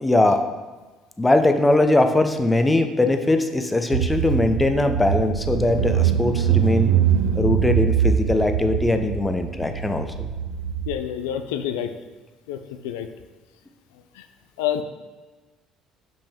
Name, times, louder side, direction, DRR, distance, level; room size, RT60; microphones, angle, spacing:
voice 1, 0.0-0.4 1.2-6.9 7.4-10.3, left 2 dB, 15° left, 7 dB, 0.7 m, -20 dB
Car / Engine, 3.9-10.9, right 8 dB, 85° right, 0.5 m, -23 dB
voice 2, 10.9-11.9 12.5-12.6 12.8-13.1 14.6-14.8, left 10 dB, 80° left, 8 dB, 0.3 m, -27 dB
5.3 x 5.2 x 3.5 m, 1.3 s
hypercardioid pair, 60°, 0 cm